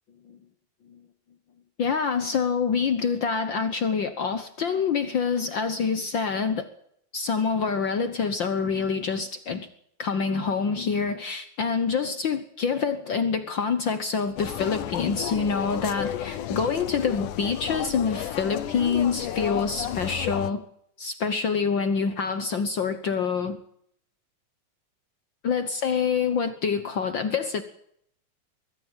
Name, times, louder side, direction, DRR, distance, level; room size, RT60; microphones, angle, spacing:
voice 1, 1.8-6.7 7.1-9.7 10.0-20.6 21.0-23.6 25.4-27.6, left 5 dB, 60° left, 10 dB, 1.2 m, -26 dB
sound 1, 14.4-20.5, left 11 dB, 90° left, 2.5 m, -32 dB
22.0 x 14.5 x 8.9 m, 0.71 s
omnidirectional pair, 3.5 m